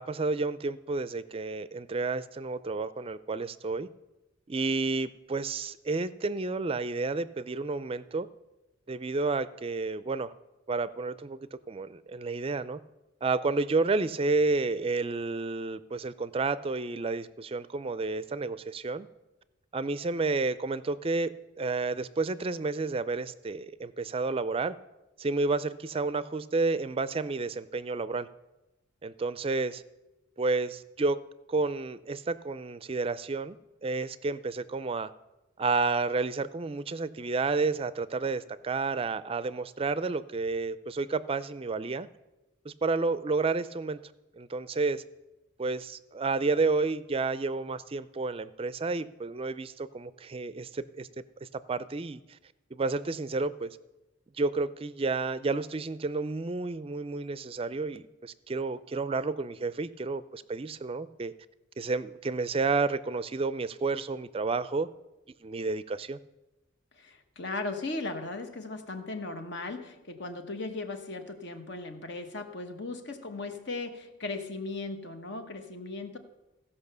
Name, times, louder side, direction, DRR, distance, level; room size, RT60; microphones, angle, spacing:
voice 1, 0.0-3.9 4.5-8.3 8.9-10.3 10.7-12.8 13.2-19.1 19.7-24.7 25.2-28.3 29.0-29.8 30.4-31.2 31.5-33.6 33.8-35.1 35.6-42.1 42.7-44.0 44.4-45.0 45.6-51.1 51.5-52.2 52.7-53.7 54.4-61.3 61.8-64.9 65.4-66.2, right 3 dB, 30° right, 16 dB, 0.4 m, -30 dB
voice 2, 66.9-76.2, left 3 dB, 60° left, 7 dB, 1.2 m, -37 dB
16.0 x 5.5 x 6.7 m, 1.0 s
head